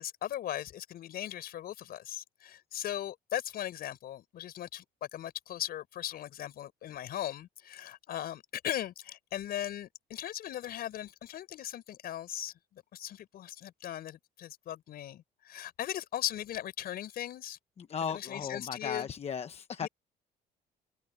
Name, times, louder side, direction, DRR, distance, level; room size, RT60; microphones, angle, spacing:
voice 1, 0.0-17.6 18.0-19.1 19.8-19.9, left 12 dB, 65° left, 5.6 m, -38 dB
voice 2, 17.8-19.9, left 7 dB, 35° left, 1.0 m, -36 dB
cardioid pair, 110°, 17 cm